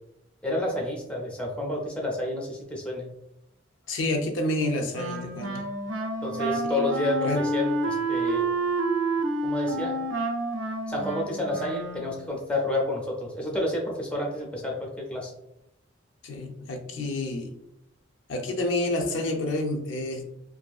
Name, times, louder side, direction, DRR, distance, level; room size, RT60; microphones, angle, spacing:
voice 1, 0.4-3.1 6.2-8.5 9.4-10.0 10.9-15.3, left 1 dB, 5° left, -1 dB, 0.5 m, -30 dB
voice 2, 3.9-5.6 6.8-6.9 7.2-7.4 16.2-17.5 18.3-20.2, left 1 dB, 75° left, 3 dB, 0.5 m, -29 dB
Wind instrument woodwind instrument, 4.9-12.3, right 2 dB, 80° right, 0.4 m, -29 dB
2.6 x 2.5 x 2.3 m, 0.82 s
head